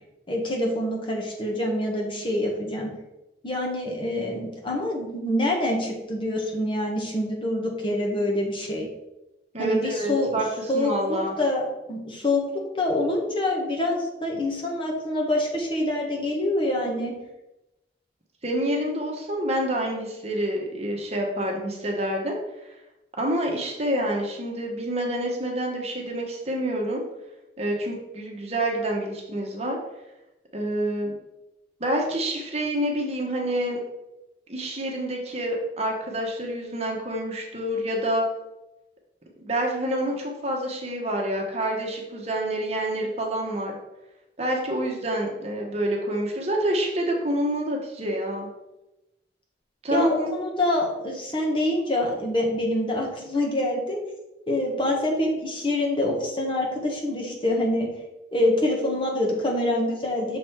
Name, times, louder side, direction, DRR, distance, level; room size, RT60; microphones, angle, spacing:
voice 1, 0.3-2.9 3.4-8.9 9.6-10.3 10.7-12.4 12.7-17.1 49.9-54.0 54.5-57.9 58.3-60.4, left 1 dB, 30° left, 0 dB, 1.2 m, -26 dB
voice 2, 9.5-10.4 10.7-11.4 18.4-22.4 23.2-27.0 27.6-29.8 30.5-31.1 31.8-33.8 34.5-38.2 39.4-43.7 44.4-48.5 49.8-50.4, right 1 dB, 35° right, 0 dB, 1.2 m, -27 dB
6.5 x 4.1 x 4.5 m, 0.96 s
head